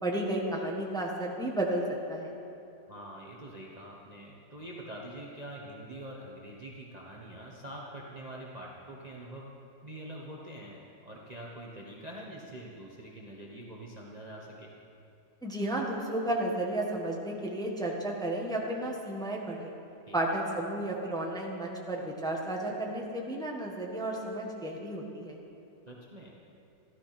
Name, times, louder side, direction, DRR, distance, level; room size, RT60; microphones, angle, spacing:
voice 1, 0.0-2.4 15.4-19.7 20.1-25.4, right 1 dB, ahead, -1 dB, 1.4 m, -33 dB
voice 2, 2.9-9.5 9.8-14.7 20.1-20.2 25.9-26.3, right 1 dB, 25° right, -3 dB, 1.2 m, -45 dB
14.0 x 13.0 x 5.9 m, 2.7 s
omnidirectional pair, 1.9 m